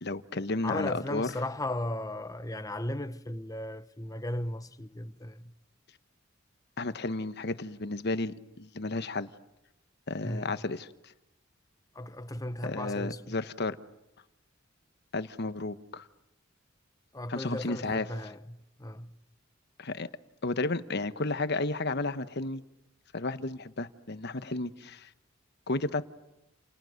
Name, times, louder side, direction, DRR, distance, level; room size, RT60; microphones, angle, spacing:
voice 1, 0.0-1.3 6.8-9.3 10.1-11.1 12.6-13.8 15.1-16.0 17.3-18.1 19.8-20.1 20.4-22.6 23.1-25.1 25.7-26.1, left 2 dB, 55° left, 1.2 m, -32 dB
voice 2, 0.6-5.5 10.2-10.6 11.9-13.4 17.1-19.1, left 1 dB, 15° left, 1.0 m, -36 dB
29.5 x 29.0 x 6.6 m
head